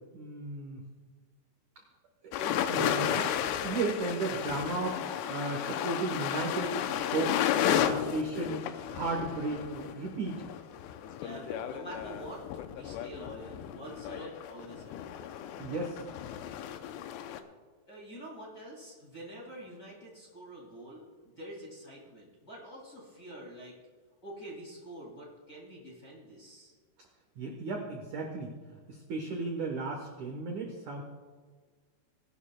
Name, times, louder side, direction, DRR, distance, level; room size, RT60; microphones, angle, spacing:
voice 1, 0.1-0.8 2.4-3.3 3.6-6.7 7.1-8.6 8.9-10.4 15.6-16.0 27.4-28.5 28.9-31.0, right 3 dB, 90° right, 1 dB, 1.6 m, -35 dB
sound 1, 2.3-17.4, left 10 dB, 80° left, 2.5 m, -33 dB
voice 2, 11.0-15.1 17.9-23.8 24.2-26.7, right 1 dB, 35° left, -3 dB, 1.5 m, -46 dB
20.0 x 11.5 x 2.3 m, 1.5 s
omnidirectional pair, 5.3 m